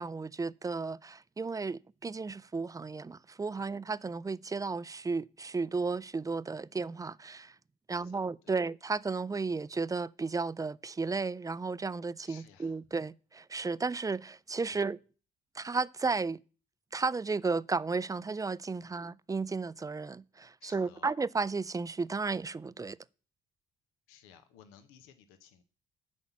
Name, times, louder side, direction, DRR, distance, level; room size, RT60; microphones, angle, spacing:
voice 1, 0.0-7.5 7.9-15.0 15.6-16.4 16.9-23.0, right 4 dB, 15° right, 0.4 m, -34 dB
voice 2, 7.9-8.6 12.2-12.8 14.7-14.8 18.8-19.0 20.6-21.1 24.1-25.6, left 8 dB, 85° left, 1.0 m, -58 dB
11.0 x 4.3 x 7.1 m
hypercardioid pair, 60°, 21 cm